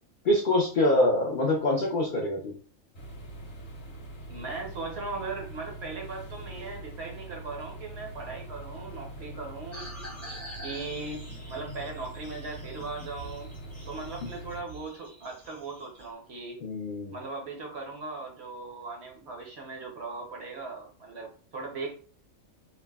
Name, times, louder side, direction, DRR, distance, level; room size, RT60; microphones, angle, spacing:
voice 1, 0.2-2.5 16.6-17.2, left 1 dB, 70° left, -1 dB, 0.4 m, -25 dB
sound 1, 2.9-14.6, right 1 dB, 40° left, 0.9 m, -43 dB
voice 2, 4.3-9.9 10.6-13.5 13.9-16.6 17.1-21.9, right 3 dB, 60° right, 1 dB, 0.8 m, -38 dB
sound 2, 9.7-16.1, equal, 15° left, 0.5 m, -46 dB
3.2 x 2.1 x 2.2 m, 0.43 s
omnidirectional pair, 1.5 m